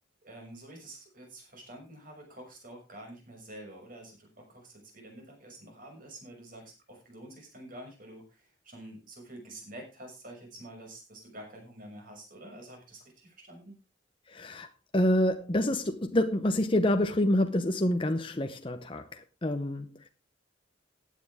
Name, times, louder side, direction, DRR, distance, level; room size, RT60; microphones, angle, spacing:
voice 1, 0.2-13.7, right 1 dB, 45° right, 6.2 m, -48 dB
voice 2, 14.3-14.7 14.9-20.1, left 1 dB, 25° left, 0.8 m, -27 dB
15.5 x 9.4 x 3.6 m
head